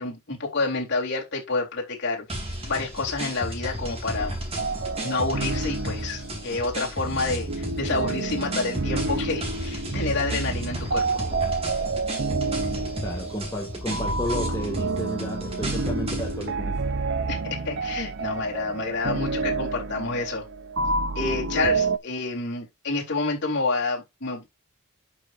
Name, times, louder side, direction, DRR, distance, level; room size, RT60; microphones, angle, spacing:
voice 1, 0.0-2.2 2.6-4.4 5.0-11.2 17.3-20.4 21.2-24.5, left 3 dB, 55° left, 3.9 m, -28 dB
sound 1, 2.3-16.5, right 1 dB, 25° right, 3.1 m, -34 dB
sound 2, 4.6-22.0, right 3 dB, 55° right, 0.7 m, -29 dB
voice 2, 13.0-16.8, equal, 15° left, 2.1 m, -32 dB
11.5 x 6.1 x 2.6 m
head